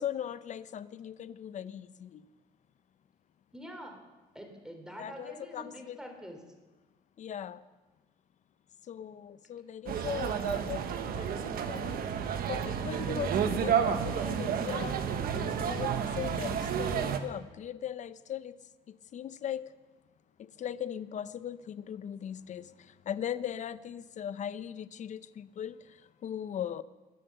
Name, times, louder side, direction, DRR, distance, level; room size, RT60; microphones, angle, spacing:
voice 1, 0.0-2.1 5.0-6.0 7.2-7.6 8.9-10.8 11.1-12.0 12.5-14.9 15.3-18.5 19.1-19.6 20.6-22.6 23.1-25.7 26.2-26.8, left 9 dB, 45° left, 15 dB, 0.6 m, -38 dB
voice 2, 3.5-4.0 4.3-6.4, equal, 5° right, 3 dB, 3.1 m, -46 dB
sound 1, 9.9-17.2, right 8 dB, 60° right, 1.2 m, -31 dB
21.0 x 7.5 x 6.9 m, 1.2 s
cardioid pair, 110°, 17 cm